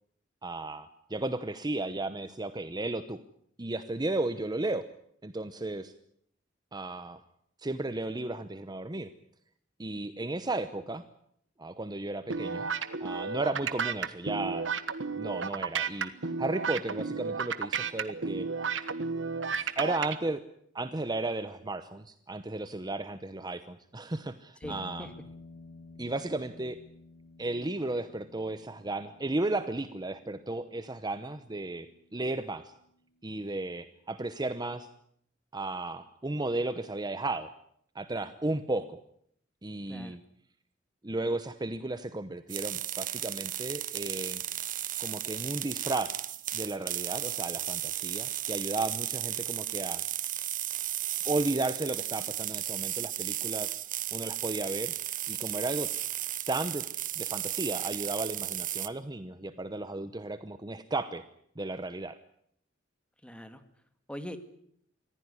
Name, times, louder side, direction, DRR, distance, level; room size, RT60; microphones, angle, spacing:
voice 1, 0.4-3.2 3.6-4.8 5.2-5.9 6.7-7.2 7.6-9.1 9.8-11.0 11.6-12.7 13.0-14.7 15.1-18.5 19.5-20.4 20.7-25.1 26.0-26.8 27.4-32.7 33.2-34.9 35.5-37.5 37.9-39.0 39.6-40.2 41.0-44.4 45.0-46.2 46.5-50.0 51.3-53.8 54.1-54.9 55.3-55.9 56.5-56.9 57.2-61.2 61.6-62.2, right 2 dB, 20° right, 11 dB, 0.9 m, -34 dB
sound 1, 12.3-20.1, right 5 dB, 80° right, 1.4 m, -32 dB
sound 2, 24.6-33.0, left 3 dB, 55° left, 1.6 m, -52 dB
voice 2, 24.6-25.1 39.9-40.2 63.2-63.6 64.1-64.4, equal, 5° left, 9 dB, 2.0 m, -42 dB
sound 3, 42.5-58.9, right 13 dB, 45° right, 1.0 m, -34 dB
24.5 x 15.5 x 9.7 m, 0.69 s
head